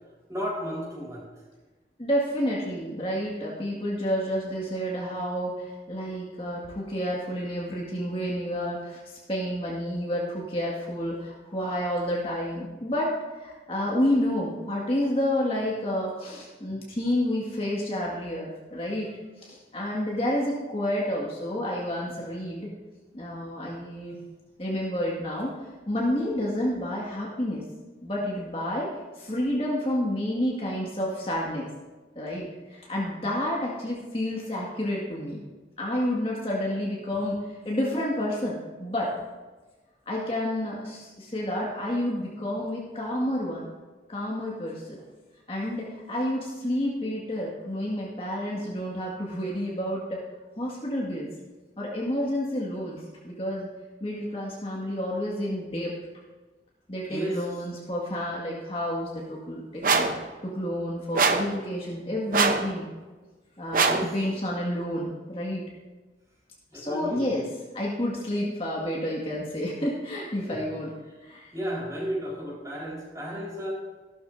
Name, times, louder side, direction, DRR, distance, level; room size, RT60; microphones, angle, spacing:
voice 1, 0.3-1.3 57.1-57.4 63.8-64.1 66.7-67.3 70.5-70.7 71.5-73.7, equal, 20° right, -4 dB, 4.3 m, -33 dB
voice 2, 2.0-13.1 13.4-19.1 19.4-22.7 23.1-24.2 24.6-25.6 25.9-27.6 28.0-28.9 29.2-31.7 32.2-35.4 35.8-39.1 40.1-43.7 44.1-45.0 45.5-50.2 50.6-51.3 51.8-53.7 54.0-55.9 56.9-62.9 63.6-65.7 66.7-67.5 67.7-70.9 71.2-71.5, left 1 dB, 30° left, -4 dB, 1.9 m, -30 dB
sound 1, 59.8-60.2 61.1-61.5 62.3-62.7 63.7-64.1, right 4 dB, 50° right, 0.8 m, -22 dB
15.0 x 12.5 x 2.7 m, 1.3 s
head